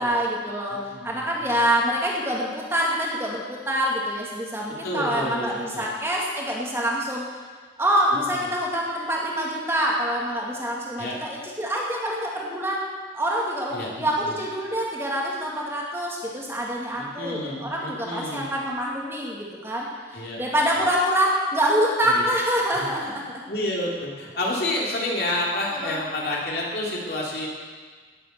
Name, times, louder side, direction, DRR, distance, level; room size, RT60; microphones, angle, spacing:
voice 1, 0.0-7.3 7.8-12.9 13.1-23.4 25.7-26.0, equal, 15° right, -3 dB, 2.0 m, -26 dB
voice 2, 0.7-1.6 4.8-5.8 8.3-8.4 11.0-11.2 13.7-14.3 17.0-18.5 20.1-20.4 22.0-22.3 23.0-23.2 23.5-27.5, left 1 dB, 55° left, -3 dB, 3.0 m, -30 dB
17.5 x 7.5 x 6.7 m, 1.5 s
head